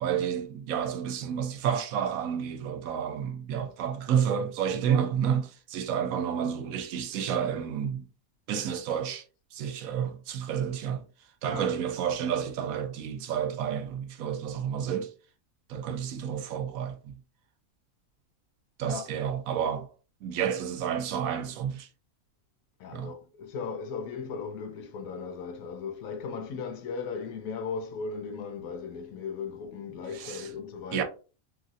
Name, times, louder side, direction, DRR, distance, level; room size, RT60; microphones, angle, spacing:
voice 1, 0.0-8.0 8.5-9.2 9.5-11.0 11.4-15.1 15.7-17.2 18.8-19.9 20.2-21.9 22.9-23.1 30.1-30.5 30.9-31.0, right 8 dB, 80° right, 1.0 m, -30 dB
voice 2, 22.8-31.0, left 5 dB, 80° left, 1.0 m, -37 dB
3.1 x 2.6 x 2.5 m
omnidirectional pair, 1.5 m